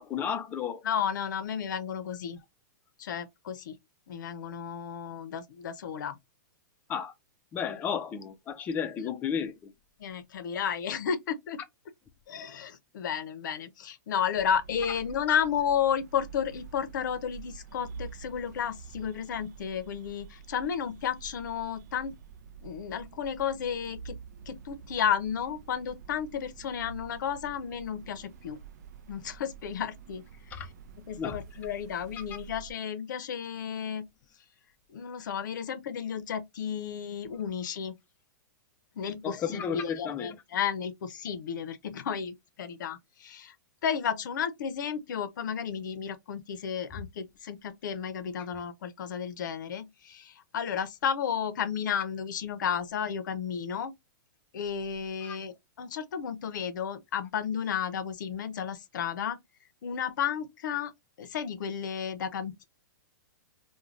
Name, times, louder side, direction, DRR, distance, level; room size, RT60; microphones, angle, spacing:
voice 1, 0.0-0.8 6.9-7.1 7.5-9.7 15.3-15.4 30.5-30.7 31.2-31.4 39.2-40.4 55.2-55.4, left 7 dB, 15° left, 0.4 m, -33 dB
voice 2, 0.8-2.4 3.0-3.8 4.1-6.2 9.0-9.1 10.0-11.6 12.3-22.1 22.6-24.2 24.5-28.6 29.1-30.7 31.1-34.1 34.9-37.9 39.0-43.5 43.8-54.0 54.5-59.4 59.8-60.9 61.2-62.6, left 8 dB, 70° left, 0.6 m, -33 dB
sound 1, 14.3-32.7, right 7 dB, 60° right, 0.4 m, -48 dB
2.5 x 2.2 x 3.1 m
hypercardioid pair, 155°, 11 cm